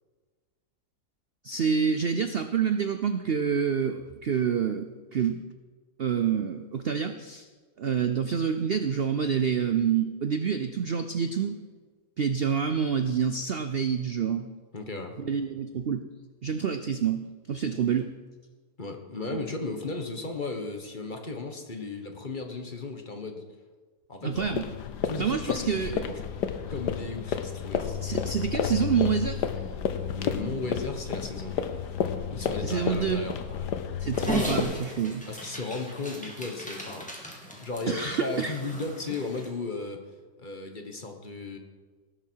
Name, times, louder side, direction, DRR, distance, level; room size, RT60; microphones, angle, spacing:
voice 1, 1.4-5.4 6.0-7.5 7.8-11.6 12.2-14.5 15.2-16.0 16.4-18.1 19.3-19.4 24.2-24.7 25.2-26.1 27.8-29.5 32.6-33.2 34.0-35.3 37.9-38.6, right 7 dB, 60° right, 9 dB, 0.6 m, -27 dB
voice 2, 14.7-15.1 18.8-23.4 24.1-24.5 25.0-26.2 26.7-28.0 30.1-31.7 32.3-33.7 35.3-37.1 37.6-40.0 40.4-41.6, left 3 dB, 30° left, 4 dB, 1.4 m, -35 dB
sound 1, 24.3-34.6, left 8 dB, 90° left, 1.5 m, -31 dB
Dog, 34.1-39.5, equal, 5° left, 2.6 m, -36 dB
18.5 x 11.5 x 4.6 m, 1.4 s
omnidirectional pair, 1.7 m